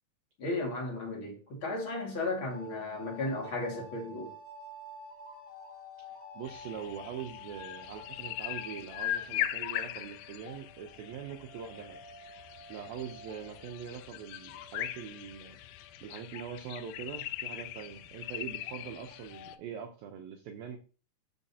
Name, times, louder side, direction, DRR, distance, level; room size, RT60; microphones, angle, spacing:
voice 1, 0.4-4.3, left 2 dB, 40° left, 1.9 m, -35 dB
sound 1, 2.5-16.8 17.2-17.3 17.5-19.6, left 2 dB, 20° left, 2.4 m, -51 dB
voice 2, 6.1-12.0 12.7-15.6 16.0-20.8, right 8 dB, 85° right, 2.0 m, -43 dB
sound 2, 6.5-19.6, left 13 dB, 85° left, 2.5 m, -40 dB
12.5 x 5.7 x 2.8 m
omnidirectional pair, 5.2 m